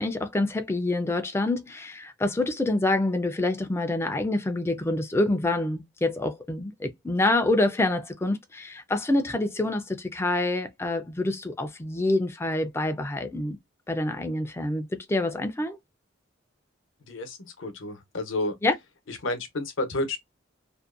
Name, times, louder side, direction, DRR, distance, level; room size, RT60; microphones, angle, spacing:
voice 1, 0.0-13.6 13.9-15.8 18.6-18.7, left 2 dB, 15° left, 0.4 m, -26 dB
voice 2, 17.0-18.5 19.1-20.2, left 2 dB, 70° left, 0.8 m, -31 dB
2.5 x 2.1 x 2.4 m
head